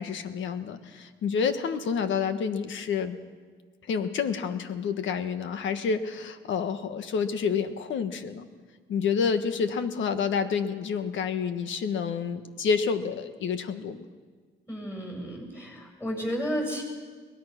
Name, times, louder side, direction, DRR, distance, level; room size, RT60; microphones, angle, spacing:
voice 1, 0.0-3.2 3.9-8.5 8.9-14.1, left 6 dB, 75° left, 9 dB, 1.5 m, -29 dB
voice 2, 14.7-16.8, equal, 10° left, 1 dB, 8.0 m, -32 dB
22.5 x 19.0 x 6.0 m, 1.5 s
cardioid pair, 90°, 20 cm